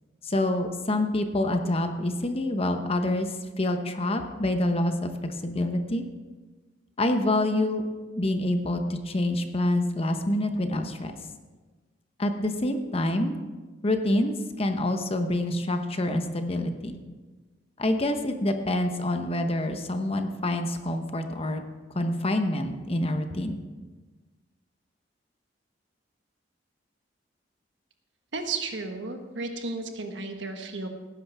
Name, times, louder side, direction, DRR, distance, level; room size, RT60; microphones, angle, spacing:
voice 1, 0.2-5.1 5.4-6.0 7.0-7.8 8.2-11.1 12.2-13.4 13.8-17.0 17.8-21.6 21.9-23.6, left 1 dB, 35° left, 6 dB, 0.9 m, -27 dB
voice 2, 28.3-30.9, right 3 dB, 80° right, 4 dB, 1.4 m, -33 dB
17.5 x 10.0 x 3.5 m, 1.3 s
head